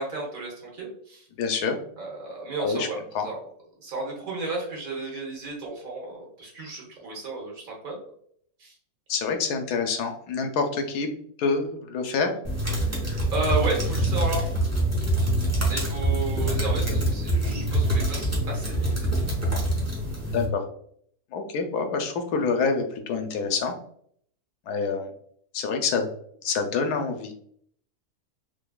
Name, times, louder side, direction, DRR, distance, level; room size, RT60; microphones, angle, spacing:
voice 1, 0.0-1.3 2.0-3.4 3.8-8.0 8.6-8.8 13.3-14.5 15.7-18.9, right 3 dB, 65° right, -2 dB, 1.5 m, -33 dB
voice 2, 1.4-1.8 2.6-2.9 3.1-3.2 9.1-11.1 11.4-12.3 20.3-20.6 21.3-23.8 24.7-25.1 25.5-26.1 26.4-27.3, left 5 dB, 85° left, 5 dB, 1.2 m, -26 dB
sound 1, 12.4-20.4, right 1 dB, 15° right, 0.8 m, -25 dB
3.7 x 3.2 x 2.3 m, 0.63 s
omnidirectional pair, 1.6 m